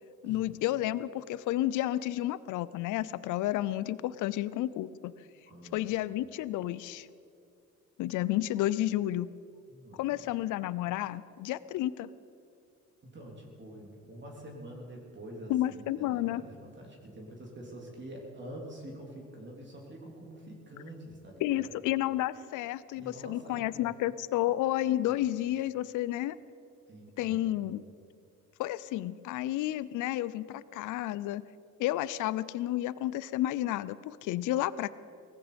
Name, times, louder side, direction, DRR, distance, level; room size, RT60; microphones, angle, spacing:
voice 1, 0.2-5.1 5.7-7.1 8.0-9.3 10.0-12.1 15.5-16.4 21.4-26.4 27.2-27.8 28.6-31.4 31.8-34.9, left 14 dB, 85° left, 18 dB, 0.5 m, -31 dB
voice 2, 5.5-5.8 9.7-10.3 13.0-21.7 22.9-23.9 26.9-27.5, right 1 dB, 40° right, -1 dB, 3.6 m, -46 dB
18.0 x 15.0 x 5.2 m, 2.5 s
cardioid pair, 90°, 30 cm